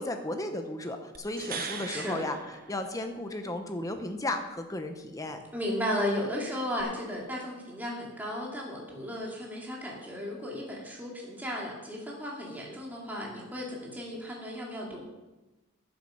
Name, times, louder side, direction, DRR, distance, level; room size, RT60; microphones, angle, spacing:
voice 1, 0.0-5.4, left 1 dB, 15° left, 6 dB, 0.8 m, -34 dB
sound 1, 1.1-3.4 6.8-6.9, right 5 dB, 40° right, 0.9 m, -40 dB
voice 2, 1.9-2.2 5.5-15.0, equal, 10° right, -3 dB, 2.4 m, -35 dB
9.7 x 7.6 x 6.2 m, 1.1 s
head